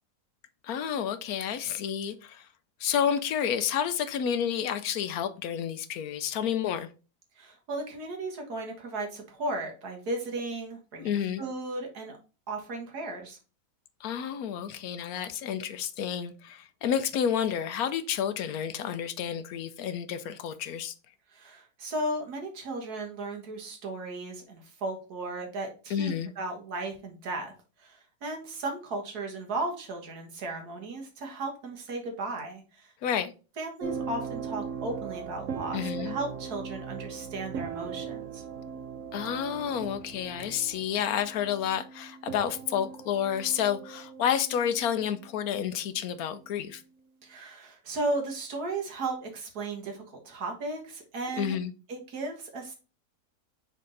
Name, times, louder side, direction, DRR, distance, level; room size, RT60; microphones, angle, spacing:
voice 1, 0.6-2.5 2.8-6.9 11.0-11.4 14.0-20.9 25.9-26.3 33.0-33.3 35.7-36.2 39.1-46.8 51.4-51.7, left 8 dB, 70° left, 1.1 m, -30 dB
voice 2, 7.4-12.2 12.5-13.4 21.3-27.5 27.8-32.9 33.6-38.4 47.2-51.6 51.9-52.7, right 2 dB, 70° right, 1.9 m, -35 dB
sound 1, 33.8-45.5 46.4-46.7, right 6 dB, 55° right, 1.1 m, -39 dB
6.6 x 3.7 x 3.8 m
omnidirectional pair, 1.7 m